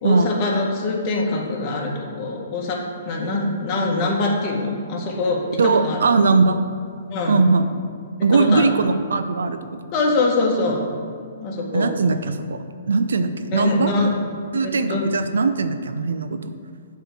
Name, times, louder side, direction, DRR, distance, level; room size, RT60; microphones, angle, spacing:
voice 1, 0.0-6.0 7.1-7.4 8.3-8.7 9.9-10.8 11.4-11.9 13.5-14.1 14.6-15.1, left 2 dB, 35° left, -1 dB, 1.6 m, -23 dB
voice 2, 5.6-6.6 7.3-7.7 8.2-9.8 11.7-12.6 12.9-13.9 14.5-16.5, right 4 dB, 80° right, 9 dB, 0.6 m, -20 dB
7.9 x 4.6 x 6.8 m, 2.3 s
hypercardioid pair, 140°, 0 cm